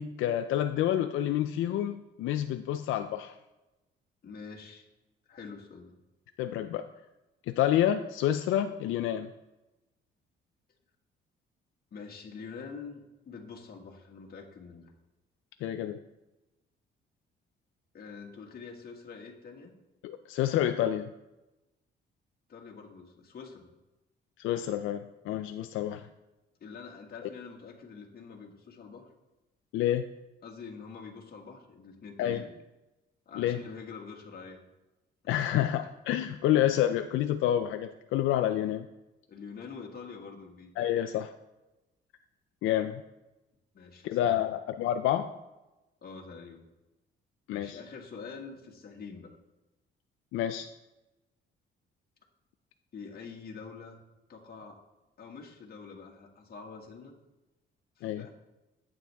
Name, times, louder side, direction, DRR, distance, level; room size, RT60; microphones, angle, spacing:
voice 1, 0.0-3.3 6.4-6.9 7.5-9.3 15.6-16.0 20.0-21.1 24.4-26.1 29.7-30.1 32.2-32.4 33.4-33.6 35.3-38.9 40.8-41.3 42.6-43.0 44.0-45.3 47.5-47.8 50.3-50.7 58.0-58.2, left 11 dB, 90° left, 8 dB, 0.5 m, -28 dB
voice 2, 4.2-4.9 5.3-5.9 11.9-14.9 17.9-19.7 22.5-23.7 26.6-29.1 30.4-32.5 33.3-34.6 39.3-40.7 43.7-44.4 46.0-46.7 47.5-49.4 52.9-54.0 54.3-54.8 55.2-57.1 58.0-58.3, left 5 dB, 50° left, 0 dB, 1.9 m, -45 dB
11.5 x 8.7 x 3.5 m, 1.0 s
cardioid pair, 90°, 20 cm